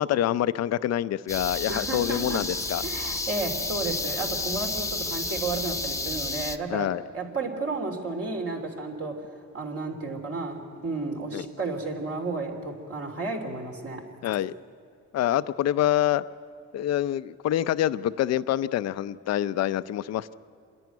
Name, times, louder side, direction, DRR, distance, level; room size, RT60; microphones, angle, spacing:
voice 1, 0.0-2.8 6.7-7.0 11.3-11.5 14.2-14.5 15.1-16.2 16.7-20.3, left 12 dB, 60° left, 15 dB, 0.5 m, -26 dB
sound 1, 1.3-6.6, left 2 dB, 10° left, 0.9 m, -31 dB
voice 2, 1.7-2.4 2.8-6.9 7.1-9.3 9.5-14.0, right 3 dB, 50° right, 2 dB, 3.3 m, -32 dB
27.5 x 11.0 x 9.3 m, 2.4 s
cardioid pair, 90°, 30 cm